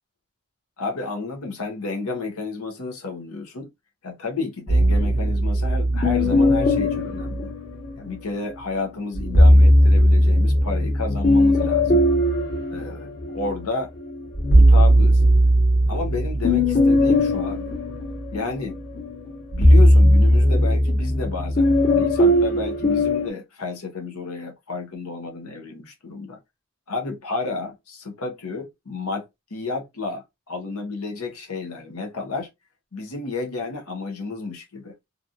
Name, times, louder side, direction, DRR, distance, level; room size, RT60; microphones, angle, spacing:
voice 1, 0.8-3.7 4.0-7.5 8.0-12.0 12.7-13.9 14.5-15.2 15.9-17.7 18.3-18.8 19.5-26.4 26.9-32.5 32.9-34.9, left 3 dB, 90° left, 0.9 m, -31 dB
sound 1, 4.7-8.2 9.1-13.6 14.0-23.3, equal, 55° left, 1.4 m, -18 dB
2.9 x 2.5 x 2.5 m
head